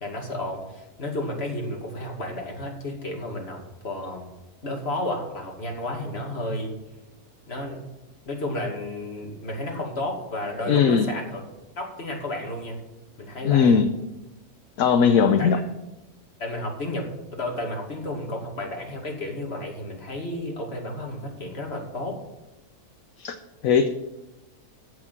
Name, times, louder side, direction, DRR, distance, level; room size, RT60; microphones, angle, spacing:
voice 1, 0.0-4.3 4.6-6.7 7.5-7.8 8.3-11.4 11.8-12.8 13.2-13.8 15.4-15.6 16.4-22.2, left 1 dB, 40° left, 1 dB, 2.5 m, -32 dB
voice 2, 10.7-11.1 13.4-13.9 14.8-15.6 23.2-23.3 23.6-23.9, left 6 dB, 65° left, 8 dB, 1.1 m, -18 dB
14.5 x 6.6 x 6.0 m, 0.99 s
omnidirectional pair, 1.6 m